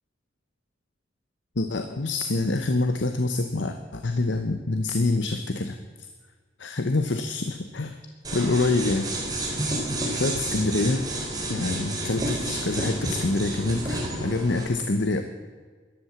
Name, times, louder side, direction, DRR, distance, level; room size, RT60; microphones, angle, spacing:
voice 1, 1.6-5.8 6.6-8.0 8.3-9.1 10.1-11.0 11.5-15.2, left 2 dB, 70° left, 7 dB, 0.9 m, -26 dB
sound 1, 8.2-14.6, right 1 dB, 20° right, 3.4 m, -30 dB
Chatter / Fixed-wing aircraft airplane, 9.0-14.4, equal, 65° right, 3.5 m, -41 dB
13.5 x 11.5 x 7.3 m, 1.5 s
head